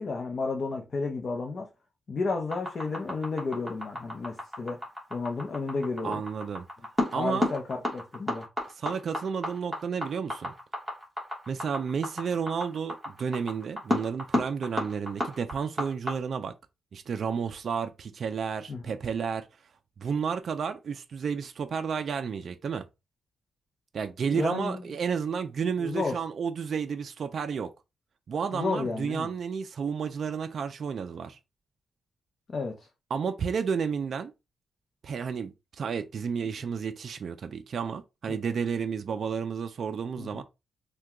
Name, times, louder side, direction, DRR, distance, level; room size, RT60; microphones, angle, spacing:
voice 1, 0.0-1.7 2.1-4.8 5.1-6.2 7.1-8.5 18.7-18.8 24.3-24.8 25.8-26.2 28.5-29.3 32.5-32.9 40.2-40.4, left 3 dB, 40° left, 0.6 m, -32 dB
sound 1, 2.5-16.1, left 1 dB, 5° right, 1.3 m, -31 dB
voice 2, 6.0-6.6 7.1-7.5 8.7-10.5 11.5-16.5 16.9-19.5 20.0-22.9 23.9-27.7 28.3-31.4 33.1-34.3 35.0-40.4, right 6 dB, 50° right, 0.3 m, -31 dB
2.8 x 2.2 x 3.5 m
wide cardioid pair, 145°, 0 cm